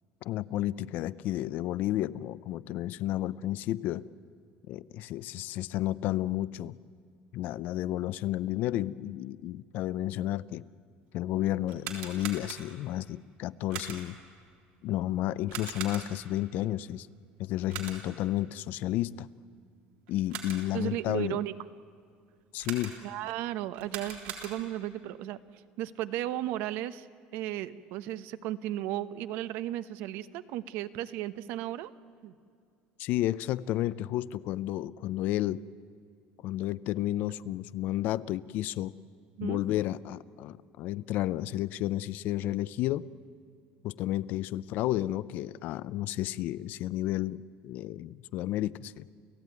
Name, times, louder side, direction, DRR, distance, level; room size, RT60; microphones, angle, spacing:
voice 1, 0.2-4.0 4.7-6.8 7.3-10.7 11.1-14.2 14.8-17.1 17.4-19.3 20.1-21.4 22.5-23.0 33.0-35.6 36.4-38.9 39.4-43.1 43.8-49.1, left 14 dB, 55° left, 18 dB, 0.5 m, -32 dB
sound 1, 11.6-12.9 13.7-14.3 15.5-16.4 17.7-18.3 20.1-20.8 22.6-23.2 23.7-24.9, right 8 dB, 85° right, 3.6 m, -41 dB
voice 2, 20.7-21.5 23.0-27.1 27.3-31.9 32.2-32.3 39.4-39.6, right 14 dB, 70° right, 14 dB, 0.9 m, -35 dB
29.5 x 15.5 x 9.5 m, 2.3 s
cardioid pair, 160°, 4 cm